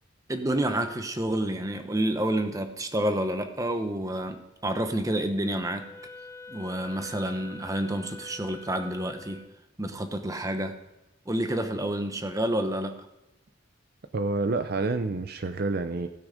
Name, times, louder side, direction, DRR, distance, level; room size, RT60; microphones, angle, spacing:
voice 1, 0.3-5.9 6.5-9.4 9.8-10.7 11.3-13.0, right 1 dB, 15° right, 7 dB, 0.9 m, -29 dB
Wind instrument woodwind instrument, 5.8-9.6, left 3 dB, 15° left, 0.5 m, -45 dB
voice 2, 14.1-16.1, right 3 dB, 50° right, 9 dB, 0.5 m, -28 dB
16.0 x 6.2 x 5.0 m, 1.0 s
head